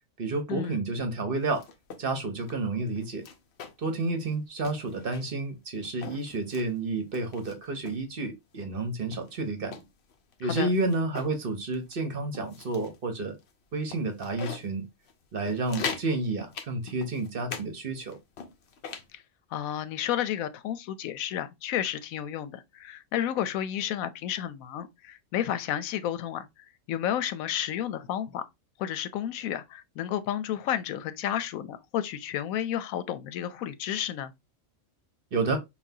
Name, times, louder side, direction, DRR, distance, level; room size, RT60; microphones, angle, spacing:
voice 1, 0.2-1.6 2.0-3.2 3.8-9.7 10.4-13.4 13.7-14.8 15.3-18.2 35.3-35.6, right 3 dB, 50° right, 0.9 m, -30 dB
sound 1, 1.3-2.0 2.4-2.5 3.0-3.9 4.2-4.3 4.6-5.4 5.8-6.7 7.1-8.0 8.6-8.7 9.1-11.4 11.7-11.9 12.3-13.0 13.4-13.5 13.9-14.7 15.1-15.2 15.5-16.1 16.5-17.7 18.0-19.1, left 6 dB, 60° left, 0.9 m, -40 dB
voice 2, 19.5-26.5 26.9-28.4 28.8-34.3, left 11 dB, 90° left, 1.0 m, -31 dB
5.7 x 2.3 x 2.7 m
omnidirectional pair, 1.4 m